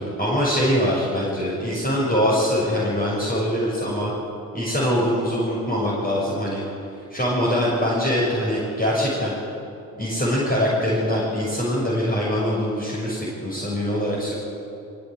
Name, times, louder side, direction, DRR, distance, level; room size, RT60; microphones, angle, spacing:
voice 1, 0.0-4.1 4.5-6.6 7.1-9.3 10.0-14.3, equal, 20° left, -5 dB, 6.8 m, -23 dB
19.5 x 16.5 x 9.3 m, 2.8 s
figure-of-eight pair, 40°, 40 cm